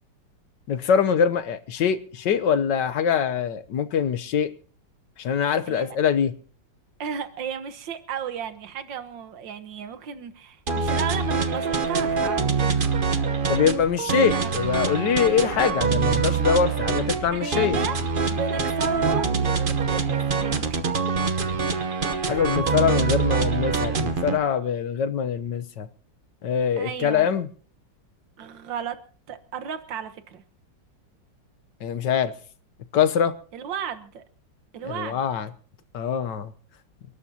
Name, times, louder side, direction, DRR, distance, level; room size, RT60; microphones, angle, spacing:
voice 1, 0.7-4.5 5.2-6.3 13.5-17.8 22.2-25.9 26.4-27.5 31.8-32.3 32.9-33.3 34.8-35.5 35.9-36.5, left 7 dB, 70° left, 1.5 m, -23 dB
voice 2, 5.7-6.0 7.0-12.4 12.7-13.1 14.1-14.6 17.2-18.0 18.3-21.0 26.8-27.3 28.4-29.0 29.3-30.4 33.5-34.2 34.7-35.2, right 7 dB, 80° right, 1.9 m, -34 dB
sound 1, 10.7-24.4, right 5 dB, 35° right, 0.9 m, -24 dB
30.0 x 12.5 x 2.8 m
omnidirectional pair, 2.0 m